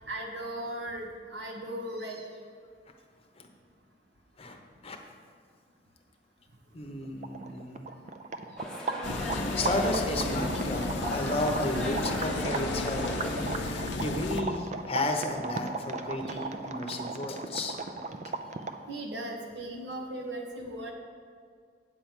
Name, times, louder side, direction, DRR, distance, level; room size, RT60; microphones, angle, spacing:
voice 1, 0.1-2.2 16.2-16.5 18.9-20.9, right 1 dB, 70° right, 0 dB, 1.4 m, -37 dB
voice 2, 6.7-7.9 9.2-17.8, left 2 dB, 35° left, 2 dB, 0.9 m, -33 dB
sound 1, 6.9-7.0 7.2-18.9, right 3 dB, 40° right, 0.5 m, -36 dB
sound 2, 8.6-13.7, left 1 dB, 5° left, 1.0 m, -37 dB
sound 3, 9.0-14.4, left 3 dB, 75° left, 0.6 m, -33 dB
8.8 x 4.6 x 7.2 m, 2.1 s
head